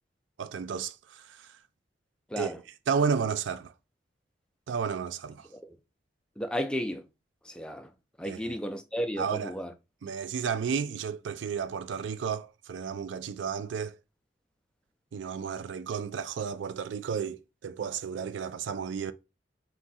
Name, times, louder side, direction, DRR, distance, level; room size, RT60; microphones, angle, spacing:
voice 1, 0.4-1.5 2.4-2.5 2.9-3.7 4.7-5.5 8.2-8.6 9.2-9.6 10.0-14.0 15.1-19.1, right 6 dB, 80° right, 0.4 m, -32 dB
voice 2, 6.4-7.0 7.5-7.9 8.2-9.7, equal, 5° left, 0.4 m, -33 dB
3.6 x 2.7 x 4.0 m
head